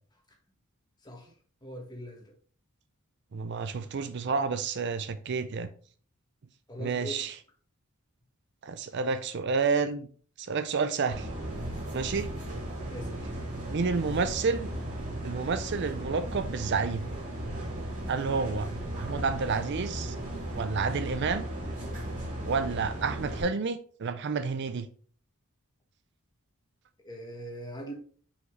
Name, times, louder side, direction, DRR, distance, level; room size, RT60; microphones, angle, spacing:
voice 1, 1.6-2.3 6.7-7.2 12.9-13.3 27.0-27.9, equal, 20° left, 1.4 m, -41 dB
voice 2, 3.3-5.7 6.8-7.3 8.6-10.1 10.4-11.3 11.9-12.3 13.7-14.7 15.2-17.1 18.1-18.7 19.0-20.2 20.5-21.5 22.4-24.9, right 5 dB, 50° right, 0.5 m, -30 dB
sound 1, 11.1-23.4, right 1 dB, 35° right, 2.6 m, -36 dB
5.7 x 5.4 x 3.2 m
head